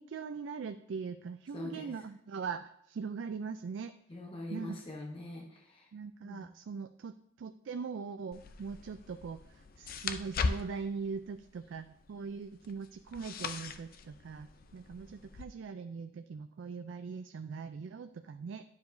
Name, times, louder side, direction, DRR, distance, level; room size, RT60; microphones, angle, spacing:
voice 1, 0.0-3.9 4.5-4.8 5.9-18.6, right 5 dB, 60° right, 9 dB, 0.3 m, -41 dB
voice 2, 1.5-1.9 4.1-5.9 6.2-6.5, left 2 dB, 25° left, -2 dB, 0.9 m, -43 dB
sound 1, 8.3-15.5, left 4 dB, 45° left, 0.4 m, -40 dB
11.5 x 4.8 x 2.6 m, 0.77 s
head